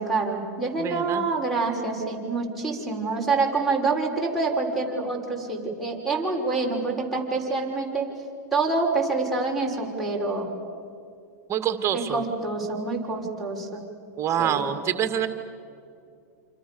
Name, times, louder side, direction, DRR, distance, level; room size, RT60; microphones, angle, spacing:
voice 1, 0.0-8.1 8.5-10.5 11.9-13.8 14.4-14.6, right 3 dB, ahead, 2 dB, 6.4 m, -26 dB
voice 2, 0.8-1.3 11.5-12.2 14.2-15.3, right 9 dB, 30° right, 9 dB, 2.2 m, -26 dB
28.0 x 27.5 x 7.1 m, 2.5 s
hypercardioid pair, 120°, 9 cm